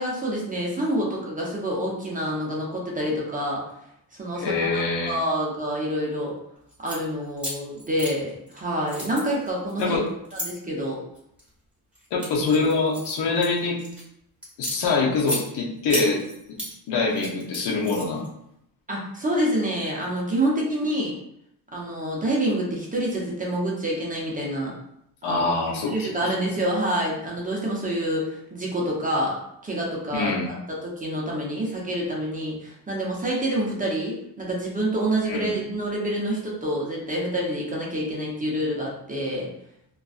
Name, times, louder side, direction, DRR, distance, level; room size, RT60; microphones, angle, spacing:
voice 1, 0.0-3.6 4.2-6.3 6.8-10.0 10.3-11.0 18.9-21.2 21.7-24.7 25.2-25.4 25.9-29.4 29.6-30.5 30.8-39.5, right 1 dB, 20° right, -3 dB, 0.7 m, -27 dB
voice 2, 4.4-5.2 9.8-10.1 12.1-13.8 14.6-16.2 16.5-16.6 16.9-18.3 25.2-26.1 30.1-30.5 35.3-35.5, left 4 dB, 80° left, -1 dB, 0.7 m, -24 dB
sound 1, 6.7-7.0 7.4-8.6 8.9-10.5 11.1-11.5 11.9-14.0 14.4-15.4 15.9-16.7 17.1-18.3, equal, 5° right, 1.1 m, -33 dB
2.5 x 2.3 x 2.3 m, 0.77 s
cardioid pair, 105°, 40 cm